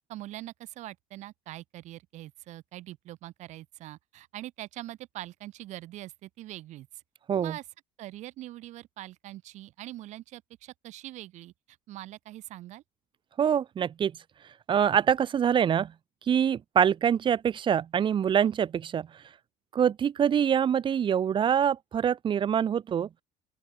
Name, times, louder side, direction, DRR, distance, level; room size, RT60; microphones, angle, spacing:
voice 1, 0.1-7.0 7.4-7.6 8.0-12.8, right 15 dB, 65° right, 4.1 m, -43 dB
voice 2, 13.4-14.1 14.7-15.9 16.3-19.1 19.7-23.1, right 8 dB, 40° right, 1.3 m, -25 dB
open air
cardioid pair, 105°, 13 cm